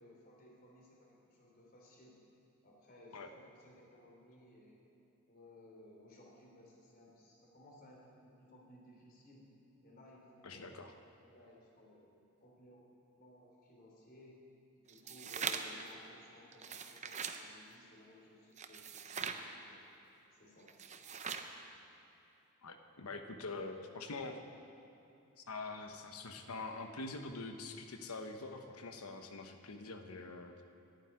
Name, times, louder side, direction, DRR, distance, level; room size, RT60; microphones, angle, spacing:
voice 1, 0.0-2.2 2.6-4.9 5.3-9.5 9.8-10.7 11.2-12.1 12.4-12.8 13.2-14.4 14.8-19.8 20.3-20.7, left 1 dB, 40° left, -2 dB, 3.0 m, -59 dB
voice 2, 10.4-10.9 22.6-24.4 25.4-30.5, left 3 dB, 90° left, 6 dB, 1.0 m, -45 dB
sound 1, 14.9-15.8 16.5-17.4 18.6-19.4 20.7-21.5, right 6 dB, 30° right, 0.7 m, -41 dB
11.0 x 9.1 x 9.7 m, 2.8 s
head